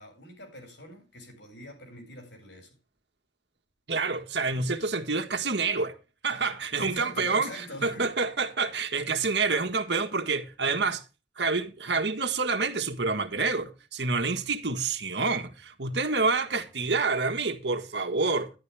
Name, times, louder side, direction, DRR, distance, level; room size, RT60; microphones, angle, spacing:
voice 1, 0.0-2.8 6.7-8.1, left 1 dB, 90° left, 7.2 m, -43 dB
voice 2, 3.9-5.9 6.2-11.0 11.4-18.5, right 4 dB, 75° right, 1.6 m, -28 dB
11.5 x 11.0 x 3.4 m
head